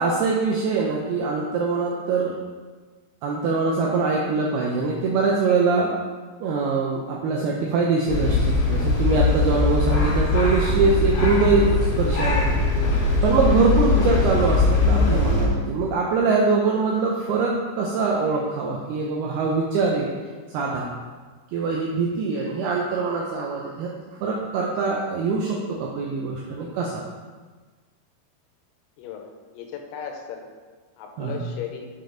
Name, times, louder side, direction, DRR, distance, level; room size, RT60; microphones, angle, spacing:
voice 1, 0.0-2.4 3.2-5.9 6.4-11.7 12.0-20.1 20.5-20.9 21.5-23.9 24.2-27.0 31.2-31.4, right 4 dB, 85° right, -2 dB, 2.2 m, -23 dB
sound 1, 8.1-15.5, left 3 dB, 65° left, 3.9 m, -21 dB
voice 2, 29.0-30.5 31.0-31.9, left 7 dB, 85° left, 3 dB, 3.1 m, -36 dB
7.8 x 5.2 x 3.8 m, 1.4 s
omnidirectional pair, 5.3 m